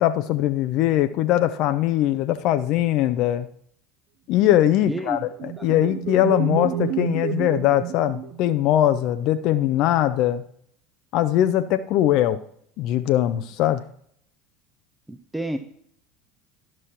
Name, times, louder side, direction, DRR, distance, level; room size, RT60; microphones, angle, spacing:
voice 1, 0.0-3.5 4.3-10.4 11.1-12.4 12.8-13.8, left 12 dB, 55° left, 10 dB, 0.4 m, -21 dB
voice 2, 4.9-5.2 15.1-15.6, right 1 dB, 5° right, 7 dB, 0.6 m, -29 dB
sound 1, 4.9-8.9, right 10 dB, 55° right, 0.6 m, -30 dB
12.0 x 6.1 x 3.0 m, 0.66 s
hypercardioid pair, 75°, 0 cm